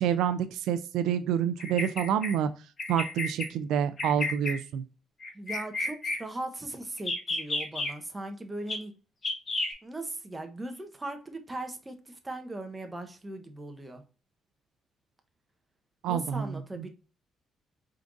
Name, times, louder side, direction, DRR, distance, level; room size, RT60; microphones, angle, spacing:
voice 1, 0.0-2.5 2.9-4.8 16.0-16.9, right 9 dB, 85° right, 0.3 m, -28 dB
Bird vocalization bird call bird song, 1.6-2.3 2.8-3.5 4.0-4.6 5.2-6.2 7.0-7.9 8.7-8.8 9.2-9.7, left 2 dB, 40° left, 1.4 m, -31 dB
voice 2, 5.3-8.9 9.8-14.0 16.1-16.9, right 2 dB, 20° right, 0.9 m, -39 dB
4.5 x 3.7 x 2.5 m
cardioid pair, 90°, 0 cm